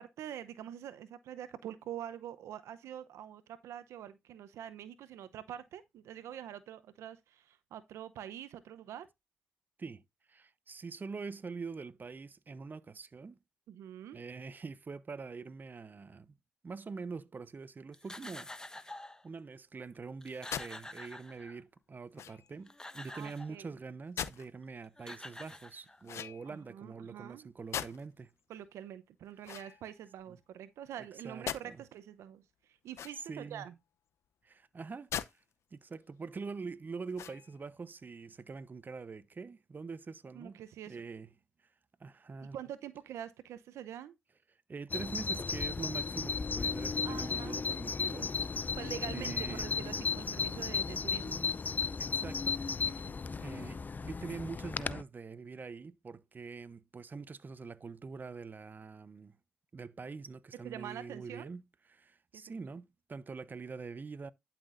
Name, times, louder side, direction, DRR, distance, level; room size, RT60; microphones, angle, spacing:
voice 1, 0.0-9.1 13.7-14.2 23.1-23.7 26.4-27.5 28.5-33.7 40.3-41.0 42.5-44.1 47.0-47.6 48.8-51.5 53.0-53.4 60.5-61.5 62.3-62.5, right 10 dB, 80° right, 0.7 m, -45 dB
voice 2, 9.8-13.4 14.1-16.4 16.6-19.0 19.2-28.3 29.5-29.7 30.3-30.4 31.0-31.8 33.3-33.7 34.4-35.1 35.7-40.6 40.9-41.3 42.0-42.6 44.7-48.5 49.1-49.7 52.0-53.0 53.4-59.3 59.7-61.6 61.9-64.3, right 4 dB, 40° right, 0.9 m, -44 dB
sound 1, 17.9-19.2 19.9-20.0 20.2-21.8 22.5-23.6 24.6-24.7 25.0-26.2, left 1 dB, 15° left, 1.3 m, -48 dB
sound 2, 20.5-20.7 22.1-22.6 24.2-24.5 26.0-26.7 27.7-28.2 29.4-30.3 31.5-31.7 32.9-33.5 35.1-35.3 35.8-35.9 37.1-37.6, left 9 dB, 75° left, 0.8 m, -40 dB
Bird vocalization bird call bird song, 44.9-55.0, left 5 dB, 40° left, 0.5 m, -35 dB
11.5 x 6.0 x 2.6 m
supercardioid pair, 50°, 5 cm